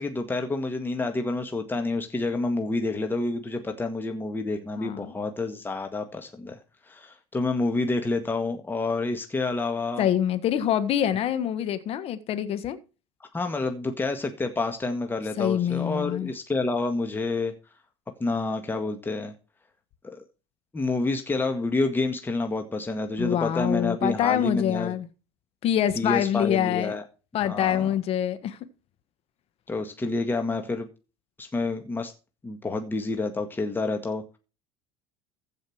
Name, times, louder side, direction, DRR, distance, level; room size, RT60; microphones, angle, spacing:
voice 1, 0.0-6.6 6.9-10.1 13.3-17.5 18.2-19.3 20.0-20.2 20.7-24.9 26.0-27.0 27.4-27.9 29.7-30.9 31.4-32.1 32.4-34.2, left 3 dB, 15° left, 1.8 m, -28 dB
voice 2, 4.8-5.1 10.0-12.8 15.4-16.3 23.2-25.1 25.6-27.0 27.3-28.6, left 10 dB, 50° left, 1.5 m, -25 dB
15.0 x 5.3 x 6.4 m
hypercardioid pair, 80°, 13 cm